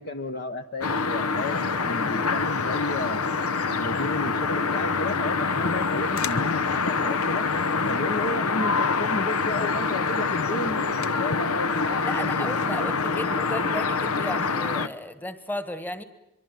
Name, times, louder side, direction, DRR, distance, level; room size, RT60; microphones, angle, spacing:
voice 1, 0.0-3.2 3.8-7.5 7.8-10.8 11.2-12.9, left 2 dB, 45° left, 7 dB, 1.0 m, -32 dB
sound 1, 0.8-14.9, left 4 dB, 80° left, 1.0 m, -25 dB
voice 2, 12.0-16.0, left 1 dB, 10° left, 10 dB, 1.4 m, -34 dB
24.5 x 23.5 x 9.1 m, 0.88 s
head